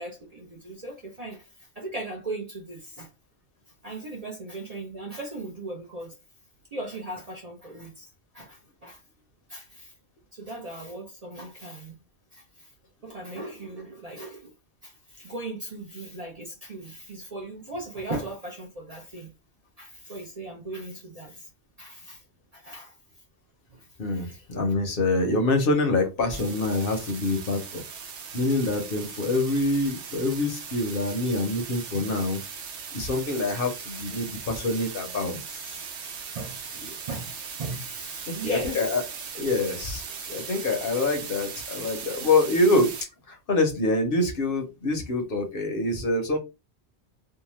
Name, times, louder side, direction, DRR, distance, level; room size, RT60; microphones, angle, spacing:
voice 1, 0.0-3.1 3.8-6.1 6.7-8.1 8.3-9.0 9.5-9.9 10.3-11.9 12.3-12.7 13.0-14.5 14.8-19.3 19.8-21.5 21.8-22.2 22.5-22.9 23.7-23.9 24.1-24.4 36.3-36.6 37.1-39.0 41.0-41.1, right 2 dB, 45° right, 0.6 m, -38 dB
voice 2, 24.0-27.8 28.3-32.4 32.9-35.8 38.3-39.0 39.3-43.0 43.3-46.4, left 2 dB, 55° left, 0.8 m, -26 dB
sound 1, 26.3-43.0, right 6 dB, 85° right, 1.0 m, -39 dB
2.7 x 2.2 x 3.0 m
omnidirectional pair, 1.2 m